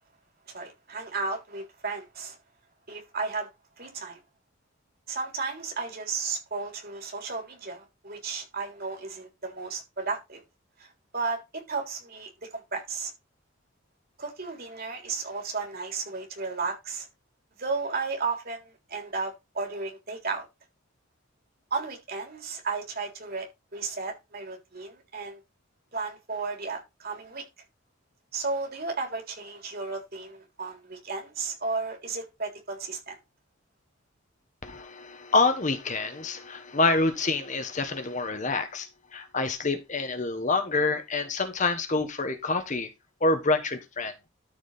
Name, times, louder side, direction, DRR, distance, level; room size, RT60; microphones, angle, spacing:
voice 1, 0.5-2.4 2.9-3.5 3.8-4.2 5.1-10.4 10.8-10.9 11.1-13.1 14.2-17.1 17.6-20.5 21.7-25.4 25.9-27.4 28.3-33.2, right 4 dB, 45° right, 3.6 m, -34 dB
voice 2, 34.6-42.9 43.2-44.3, left 3 dB, 35° left, 1.3 m, -27 dB
13.0 x 4.9 x 4.1 m
head